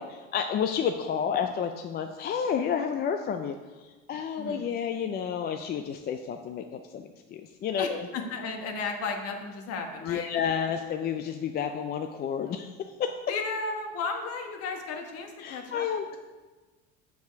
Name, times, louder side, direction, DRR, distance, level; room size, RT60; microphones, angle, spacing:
voice 1, 0.0-6.6 6.9-8.1 8.6-8.7 10.0-12.7 13.0-13.2 15.4-16.2, left 7 dB, 30° left, 6 dB, 0.4 m, -30 dB
voice 2, 7.8-10.3 13.3-16.2, left 4 dB, 50° left, 4 dB, 1.4 m, -34 dB
7.1 x 7.0 x 4.6 m, 1.3 s
supercardioid pair, 120°, 31 cm